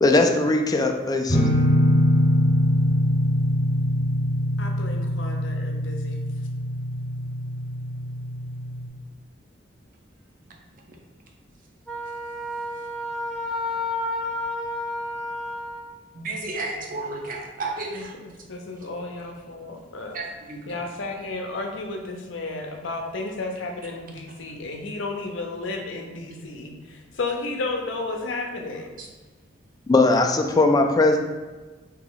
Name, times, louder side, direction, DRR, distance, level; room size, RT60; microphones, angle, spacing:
voice 1, 0.0-1.4 29.9-31.2, left 2 dB, 20° left, 4 dB, 0.3 m, -19 dB
sound 1, 1.3-8.9, left 1 dB, 45° left, 0.9 m, -23 dB
voice 2, 4.6-6.2 17.9-20.2 20.7-28.9, left 3 dB, 75° left, 3 dB, 0.6 m, -33 dB
Wind instrument woodwind instrument, 11.9-16.0, left 1 dB, ahead, 0.7 m, -30 dB
voice 3, 16.1-18.1 20.1-20.7 29.0-29.1, right 3 dB, 45° right, 1 dB, 0.6 m, -32 dB
2.9 x 2.8 x 3.9 m, 1.3 s
head